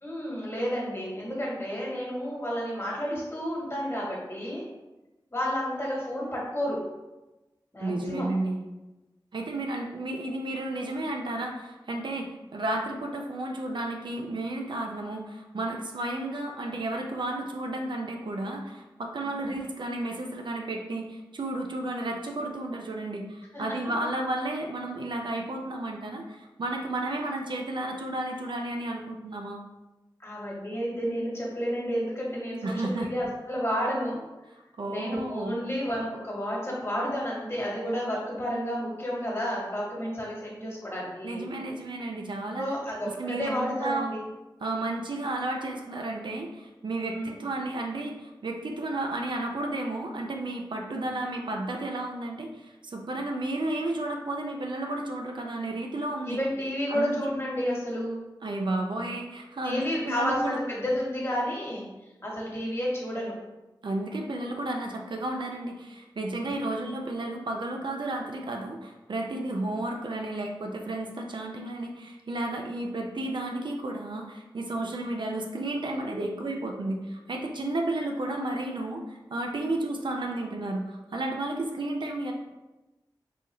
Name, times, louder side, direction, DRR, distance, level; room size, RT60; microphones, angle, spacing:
voice 1, 0.0-4.6 5.3-6.9 7.7-8.3 19.2-19.6 23.5-23.8 30.2-34.2 34.8-41.5 42.6-44.2 47.0-47.3 51.0-51.1 56.3-58.2 59.6-61.9 62.2-63.3 66.4-66.9, equal, 30° left, -4 dB, 1.5 m, -31 dB
voice 2, 7.8-8.6 9.3-29.6 32.6-33.1 34.8-35.6 41.2-42.6 43.1-44.1 44.6-56.4 56.9-57.3 58.4-60.6 63.8-82.3, right 2 dB, 65° right, 1 dB, 0.5 m, -32 dB
3.9 x 2.6 x 3.0 m, 1.0 s
cardioid pair, 45°, 9 cm